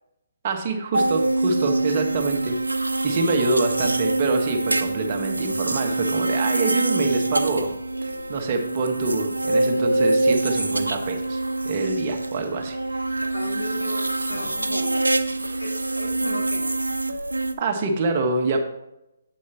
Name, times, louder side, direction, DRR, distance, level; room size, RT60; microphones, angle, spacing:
voice 1, 0.4-7.7 8.3-11.4 11.6-12.8 17.6-18.6, right 3 dB, 40° right, 3 dB, 1.6 m, -25 dB
sound 1, 0.9-17.5, right 2 dB, 85° right, 0.8 m, -25 dB
voice 2, 13.3-15.1 15.6-16.9, left 1 dB, 85° left, -1 dB, 2.8 m, -35 dB
8.2 x 8.0 x 3.0 m, 0.87 s
figure-of-eight pair, 135°, 0 cm